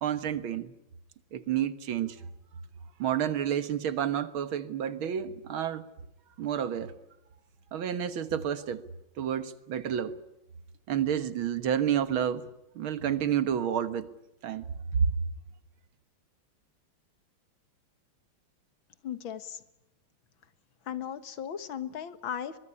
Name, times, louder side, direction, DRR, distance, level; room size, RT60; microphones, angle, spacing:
voice 1, 0.0-0.7 1.3-2.2 3.0-5.8 6.4-6.9 7.7-8.8 9.2-10.2 10.9-12.4 12.8-14.1 14.4-14.7 15.0-15.1, right 9 dB, 85° right, 13 dB, 2.2 m, -29 dB
voice 2, 19.0-19.6 20.9-22.6, left 9 dB, 75° left, 13 dB, 2.2 m, -36 dB
23.5 x 22.0 x 10.0 m, 0.90 s
omnidirectional pair, 2.2 m